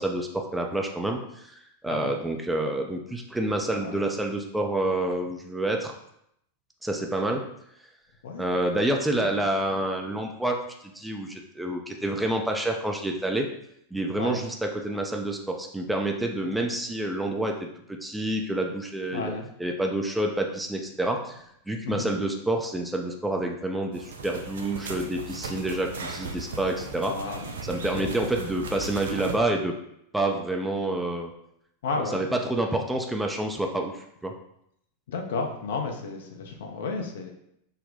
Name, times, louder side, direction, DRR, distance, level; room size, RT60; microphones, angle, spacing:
voice 1, 0.0-1.5 1.8-5.9 6.8-7.5 8.4-10.6 10.8-13.5 13.9-19.3 19.6-21.4 21.7-27.2 27.7-29.7 30.1-31.3 31.9-34.3, right 1 dB, 5° right, 2 dB, 0.4 m, -28 dB
voice 2, 3.6-4.0 8.2-8.5 9.2-9.3 14.2-14.4 19.1-19.5 21.8-22.1 26.9-27.5 27.9-28.1 31.8-32.2 35.1-37.3, left 4 dB, 60° left, 2 dB, 0.6 m, -32 dB
sound 1, 23.9-29.4, right 3 dB, 60° right, 0.5 m, -37 dB
4.0 x 2.1 x 3.9 m, 0.75 s
figure-of-eight pair, 90°, 0 cm